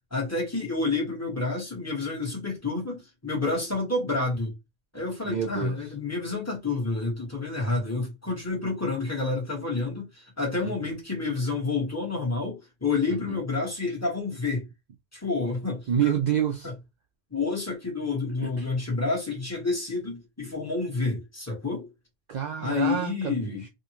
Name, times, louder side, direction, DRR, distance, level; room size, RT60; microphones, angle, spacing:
voice 1, 0.1-4.5 4.9-14.7 15.1-15.9 16.6-16.7 17.3-21.9 22.6-23.6, left 3 dB, 15° left, 1.2 m, -29 dB
voice 2, 5.2-5.7 10.6-10.7 13.1-13.4 15.9-16.7 18.4-18.7 22.3-23.6, right 9 dB, 70° right, 0.4 m, -28 dB
2.8 x 2.5 x 2.8 m
omnidirectional pair, 1.3 m